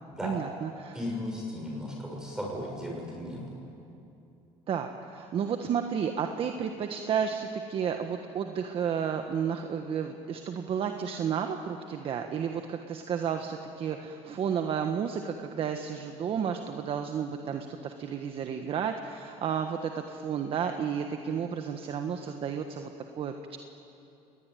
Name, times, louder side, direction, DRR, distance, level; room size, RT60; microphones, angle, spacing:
voice 1, 0.2-1.0 4.7-22.9 23.2-23.6, right 7 dB, 45° right, 6 dB, 1.5 m, -32 dB
voice 2, 0.9-3.5, left 1 dB, 5° right, -2 dB, 6.3 m, -36 dB
29.5 x 20.0 x 9.3 m, 2.8 s
cardioid pair, 110°, 13 cm